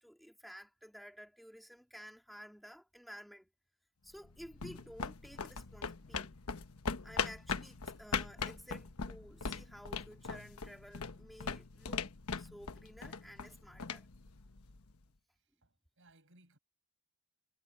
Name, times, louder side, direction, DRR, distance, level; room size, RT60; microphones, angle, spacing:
voice 1, 0.0-3.5 4.0-6.3 7.0-14.1, equal, ahead, 2.4 m, -53 dB
sound 1, 4.2-15.0, left 5 dB, 75° left, 1.2 m, -41 dB
voice 2, 15.3-16.6, right 2 dB, 60° right, 6.7 m, -66 dB
head